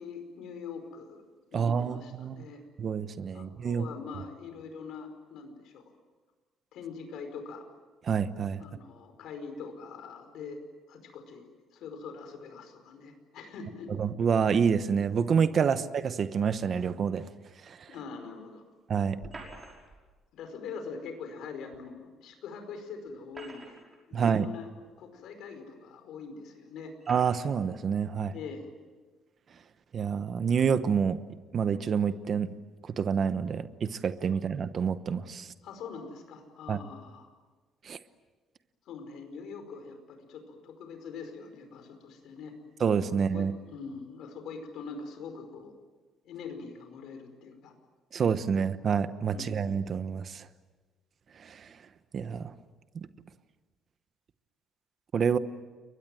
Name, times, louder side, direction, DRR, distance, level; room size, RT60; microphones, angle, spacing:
voice 1, 0.0-2.6 3.3-5.8 6.7-7.6 8.6-10.6 10.9-13.9 17.9-18.6 20.3-23.8 24.1-24.7 25.0-26.9 28.3-28.7 35.6-37.3 38.9-42.6 43.1-45.7 46.2-47.7 49.3-49.6, left 5 dB, 65° left, 6 dB, 5.0 m, -43 dB
voice 2, 1.5-2.4 2.8-3.8 8.0-8.6 14.0-17.3 17.7-17.9 18.9-19.2 24.1-24.5 27.1-28.3 29.9-31.2 31.5-32.5 32.8-35.5 36.7-36.8 37.8-38.0 42.8-43.5 48.1-50.4 51.4-51.7 52.1-52.5 52.9-53.1 55.1-55.4, right 6 dB, 35° right, 12 dB, 1.0 m, -28 dB
sound 1, 19.2-20.0 21.7-21.8 23.1-24.0 24.9-25.0 25.9-26.0 27.0-27.5, right 2 dB, 20° right, 5.6 m, -47 dB
30.0 x 23.0 x 7.7 m, 1.3 s
cardioid pair, 170°, 0 cm